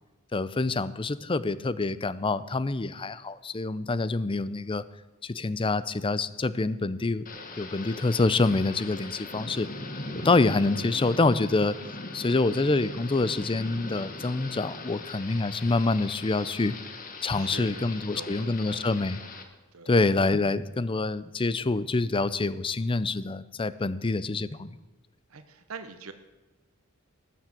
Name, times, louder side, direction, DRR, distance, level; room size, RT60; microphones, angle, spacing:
voice 1, 0.3-4.8 5.2-7.3 7.6-9.7 10.2-11.7 12.1-16.7 17.2-19.2 19.9-24.7, left 3 dB, 25° left, 16 dB, 0.5 m, -26 dB
Thunder / Rain, 7.3-19.4, left 3 dB, 40° left, 1.6 m, -41 dB
voice 2, 17.3-18.9 19.7-20.0 25.3-26.1, right 4 dB, 75° right, 9 dB, 1.1 m, -44 dB
19.0 x 7.3 x 7.6 m, 1.2 s
head